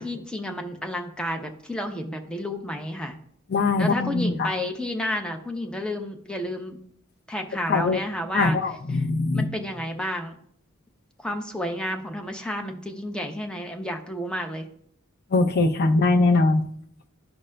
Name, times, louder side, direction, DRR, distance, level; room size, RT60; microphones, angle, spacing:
voice 1, 0.0-3.2 3.8-6.8 7.3-8.6 8.9-9.0 9.3-10.4 11.2-14.7, left 1 dB, 5° left, 3 dB, 0.6 m, -31 dB
voice 2, 3.5-4.5 7.7-8.0 8.3-9.5 15.3-16.6, left 3 dB, 50° left, 7 dB, 0.5 m, -21 dB
13.0 x 4.9 x 2.2 m, 0.68 s
head